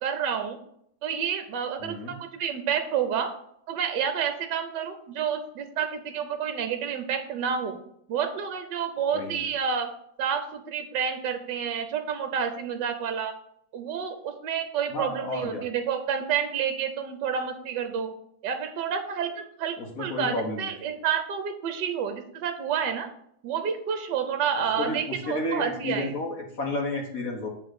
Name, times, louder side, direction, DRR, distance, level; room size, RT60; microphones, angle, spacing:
voice 1, 0.0-0.6 1.0-3.3 3.7-7.8 8.1-9.9 10.2-13.3 13.7-18.1 18.4-23.1 23.4-26.1, right 7 dB, 70° right, 7 dB, 1.4 m, -29 dB
voice 2, 1.8-2.2 9.1-9.5 14.9-15.6 19.8-20.7 24.8-27.5, left 2 dB, 50° left, 1 dB, 1.4 m, -31 dB
8.3 x 3.8 x 6.4 m, 0.71 s
omnidirectional pair, 2.1 m